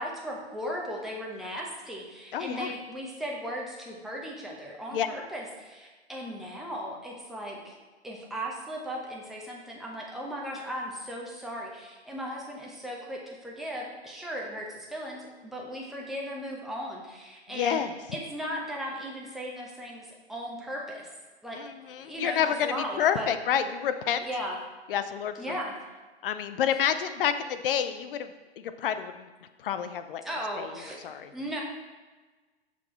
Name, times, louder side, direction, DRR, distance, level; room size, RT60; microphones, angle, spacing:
voice 1, 0.0-7.8 8.0-17.8 18.1-21.1 21.4-23.3 24.2-24.6 25.4-25.8 30.2-31.0 31.3-31.6, equal, ahead, -3 dB, 0.9 m, -37 dB
voice 2, 2.3-2.7 4.9-5.1 17.5-17.9 21.5-24.3 24.9-25.6 26.2-28.3 28.6-29.3 29.6-30.2 30.6-30.7 31.0-31.3, left 9 dB, 50° left, 10 dB, 0.6 m, -29 dB
6.1 x 6.0 x 4.4 m, 1.3 s
hypercardioid pair, 130°, 34 cm